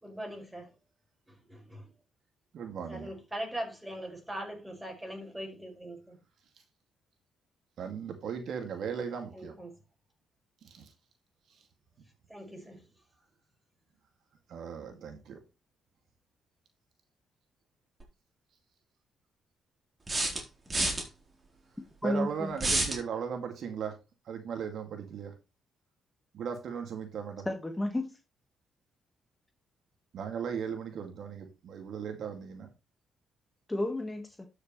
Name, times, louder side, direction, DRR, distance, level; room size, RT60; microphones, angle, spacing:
voice 1, 0.0-0.7 1.3-1.9 2.9-6.2 9.3-9.8 12.3-12.9 14.9-15.0, right 1 dB, 10° right, 5.3 m, -41 dB
voice 2, 2.5-3.1 7.8-9.5 10.6-10.9 11.5-11.6 14.5-15.4 22.0-24.0 24.2-25.3 26.3-27.5 30.1-32.7, right 7 dB, 65° right, 2.2 m, -37 dB
sound 1, 18.0-18.1 20.1-21.0 22.6-23.0, right 2 dB, 25° right, 3.8 m, -28 dB
voice 3, 22.0-22.5 27.4-28.2 33.7-34.5, left 1 dB, 15° left, 1.7 m, -32 dB
12.5 x 6.5 x 3.2 m
cardioid pair, 90°, 0 cm